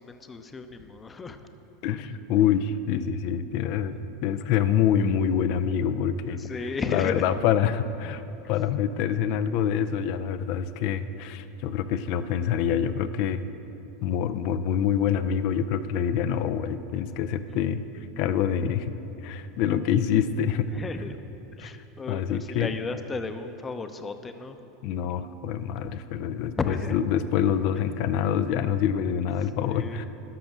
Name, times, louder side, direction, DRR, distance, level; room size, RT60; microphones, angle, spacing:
voice 1, 0.0-1.4 6.2-7.3 20.7-21.2 21.5-24.6 25.8-25.9 26.6-27.0 29.5-30.0, left 4 dB, 20° left, 8 dB, 0.7 m, -34 dB
voice 2, 1.8-6.4 6.6-8.2 8.5-13.4 14.0-17.8 18.2-18.9 19.2-20.7 21.6-21.7 22.1-22.7 24.8-30.0, left 8 dB, 60° left, 12 dB, 0.5 m, -26 dB
11.5 x 6.0 x 6.1 m, 2.9 s
hypercardioid pair, 90°, 0 cm